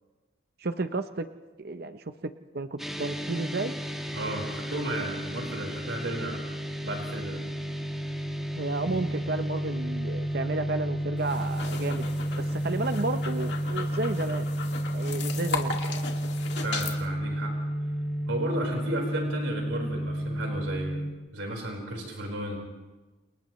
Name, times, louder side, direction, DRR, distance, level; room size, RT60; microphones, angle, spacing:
voice 1, 0.6-1.3 1.6-3.7 8.5-12.1 12.4-14.5 14.9-16.0, right 3 dB, 50° right, 9 dB, 0.7 m, -32 dB
sound 1, 2.8-21.1, equal, ahead, 1.4 m, -32 dB
voice 2, 4.1-6.4 6.8-7.4 8.8-9.2 16.5-17.6 18.3-21.0 21.3-22.6, right 1 dB, 75° right, 0 dB, 4.7 m, -34 dB
sound 2, 11.2-17.0, left 5 dB, 55° left, 2.4 m, -37 dB
30.0 x 29.5 x 3.2 m, 1.2 s
head